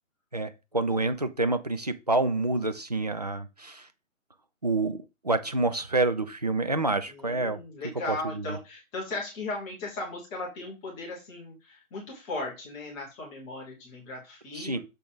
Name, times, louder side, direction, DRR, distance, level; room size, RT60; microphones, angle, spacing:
voice 1, 0.3-3.9 4.6-7.6 8.1-8.2 14.5-14.8, right 2 dB, 30° right, 0.5 m, -27 dB
voice 2, 7.1-14.8, left 2 dB, 10° left, 1.0 m, -37 dB
6.6 x 4.0 x 5.0 m
figure-of-eight pair, 145°, 41 cm